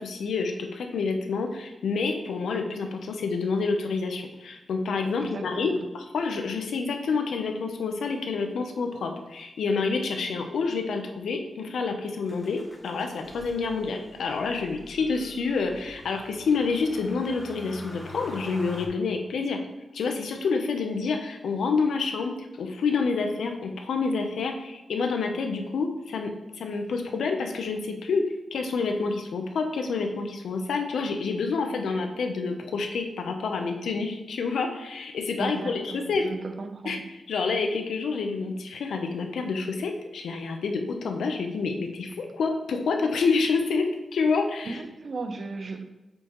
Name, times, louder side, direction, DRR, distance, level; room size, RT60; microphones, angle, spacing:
voice 1, 0.0-19.6 19.9-22.3 22.6-28.2 28.5-36.2 36.8-37.0 37.3-43.9 44.1-44.8, left 4 dB, 85° left, 0.7 m, -28 dB
voice 2, 5.2-5.9 35.4-37.0 44.6-45.8, right 3 dB, 45° right, 0.6 m, -36 dB
Motor vehicle (road), 12.3-18.9, left 1 dB, 10° left, 0.9 m, -46 dB
7.6 x 4.6 x 3.1 m
wide cardioid pair, 105°, 0 cm